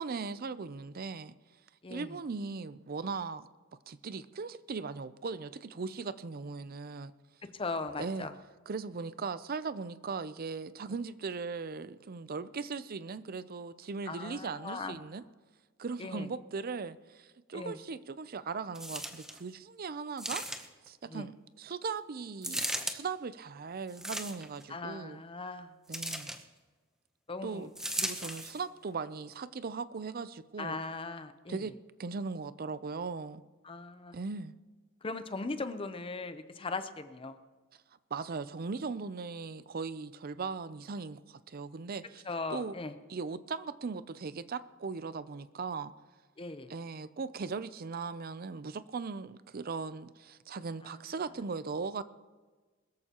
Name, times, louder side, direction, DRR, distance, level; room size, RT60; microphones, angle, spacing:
voice 1, 0.0-1.3 1.9-3.5 3.9-7.1 8.0-8.3 8.7-15.2 15.8-20.4 20.8-25.2 25.9-26.3 27.4-30.8 31.5-31.7 32.0-33.4 34.1-34.5 38.1-42.2 42.5-42.7 43.1-45.9 46.7-52.0, right 4 dB, 45° right, 15 dB, 0.5 m, -38 dB
voice 2, 1.8-2.2 7.5-8.3 14.1-15.0 16.0-16.3 17.5-17.8 21.1-21.3 24.7-25.7 27.3-27.7 30.6-31.6 33.6-34.1 35.0-37.4 42.3-42.9 46.4-46.7 50.8-50.9, left 3 dB, 25° left, 10 dB, 0.7 m, -39 dB
sound 1, 18.8-19.4 20.2-20.9 22.4-23.0 23.9-24.6 25.9-26.4 27.8-28.6 29.3-29.4, right 1 dB, 5° right, 0.8 m, -36 dB
21.5 x 13.5 x 3.0 m, 1.4 s
head